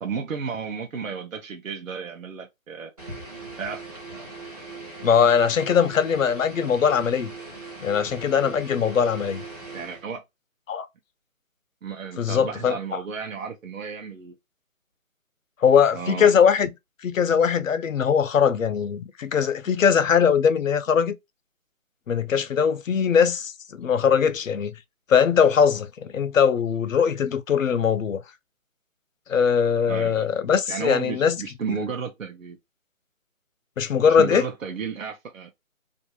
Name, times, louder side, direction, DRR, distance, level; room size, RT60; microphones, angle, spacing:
voice 1, 0.0-2.9 3.6-3.9 9.7-10.2 11.8-14.3 15.9-16.3 29.9-30.3 30.7-32.6 34.1-35.5, right 6 dB, 70° right, 0.8 m, -33 dB
sound 1, 3.0-10.1, right 3 dB, 30° right, 0.8 m, -40 dB
voice 2, 5.0-7.3 7.8-9.4 10.7-10.9 12.2-13.0 15.6-16.7 17.0-21.2 22.1-24.7 25.1-28.2 29.3-31.4 31.7-31.8 33.8-34.5, left 7 dB, 65° left, 0.6 m, -21 dB
2.6 x 2.3 x 2.7 m
figure-of-eight pair, 165°, 42 cm